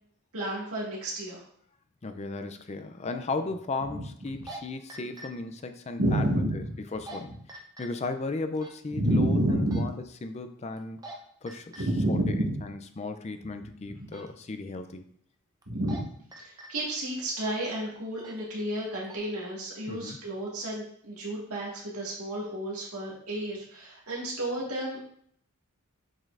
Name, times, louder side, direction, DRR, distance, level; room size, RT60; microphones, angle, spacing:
voice 1, 0.3-1.4 6.0-6.6 8.9-9.9 11.8-12.6 15.7-16.0 16.4-25.0, right 1 dB, 80° right, -5 dB, 1.9 m, -30 dB
voice 2, 2.0-6.2 6.5-6.6 6.9-7.4 7.8-11.0 11.4-15.0 19.9-20.2, left 3 dB, 30° left, 8 dB, 0.4 m, -36 dB
sound 1, 2.2-2.3 4.3-4.6 4.9-5.3 6.9-7.2 7.5-7.9 8.6-8.7 9.7-9.9 10.8-11.2 11.5-11.8 14.1-14.3 15.6-16.0 16.3-16.7 17.3-17.6 18.2-18.4 18.8-19.2, right 2 dB, 15° right, 0.7 m, -43 dB
7.3 x 5.2 x 2.5 m, 0.64 s
head